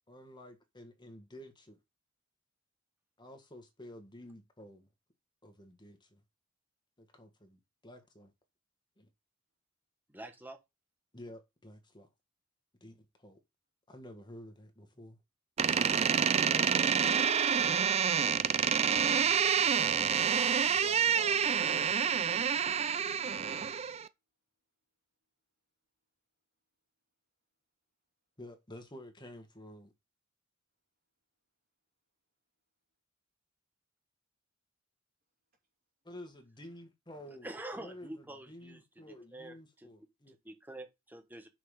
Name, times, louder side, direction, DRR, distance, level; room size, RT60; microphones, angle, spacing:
voice 1, 0.1-1.8 3.2-4.9 5.4-6.2 7.0-8.3 9.0-9.1 11.1-12.1 12.8-13.4 13.9-15.2 28.4-29.9 36.0-40.3, left 1 dB, 20° left, 1.7 m, -51 dB
voice 2, 10.1-10.6 37.4-39.9 40.3-41.5, right 1 dB, 10° right, 1.2 m, -46 dB
Door, 15.6-24.1, right 7 dB, 30° right, 0.4 m, -28 dB
voice 3, 20.7-22.8, right 3 dB, 50° right, 3.1 m, -50 dB
6.0 x 5.7 x 6.5 m
head